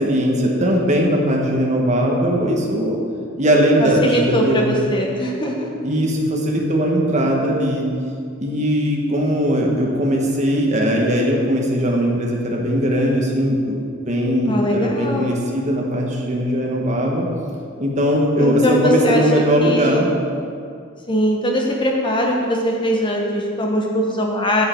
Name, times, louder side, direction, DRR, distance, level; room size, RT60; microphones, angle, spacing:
voice 1, 0.0-3.0 3.4-4.8 5.8-7.9 8.4-17.3 17.8-20.1, equal, 35° right, -1 dB, 1.3 m, -19 dB
voice 2, 3.8-5.7 14.5-15.3 18.4-20.1 21.1-24.6, equal, 20° left, 0 dB, 1.1 m, -21 dB
9.7 x 7.7 x 4.5 m, 2.3 s
head